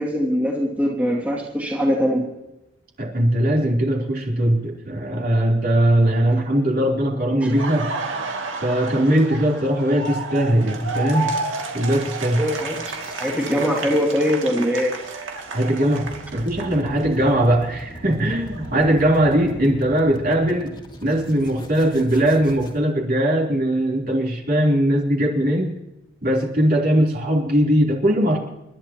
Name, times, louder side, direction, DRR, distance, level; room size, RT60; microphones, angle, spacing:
voice 1, 0.0-2.2 7.4-7.5 12.4-12.8 13.2-15.0, equal, 10° right, -3 dB, 2.5 m, -22 dB
voice 2, 3.0-7.9 8.6-11.3 11.7-12.4 15.5-20.8 21.0-25.7 26.2-28.4, right 1 dB, 50° right, -1 dB, 3.5 m, -20 dB
Laughter, 7.4-17.2 17.6-19.6, right 3 dB, 80° right, 2.4 m, -32 dB
sound 1, 12.4-22.8, equal, 25° left, 2.4 m, -39 dB
29.5 x 12.0 x 3.0 m, 0.94 s
head